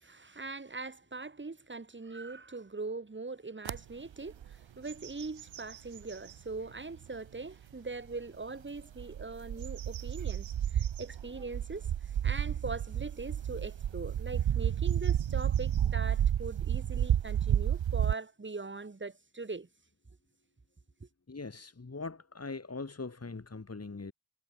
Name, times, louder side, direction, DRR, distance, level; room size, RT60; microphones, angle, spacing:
voice 1, 0.0-19.7 21.0-21.1, right 3 dB, 25° right, 1.8 m, -41 dB
sound 1, 3.7-3.8 4.3-4.5 4.9-6.4 7.0-7.1 8.8-18.1, right 10 dB, 80° right, 1.0 m, -31 dB
voice 2, 21.3-24.1, left 3 dB, 35° left, 3.6 m, -41 dB
wide cardioid pair, 110°, 45 cm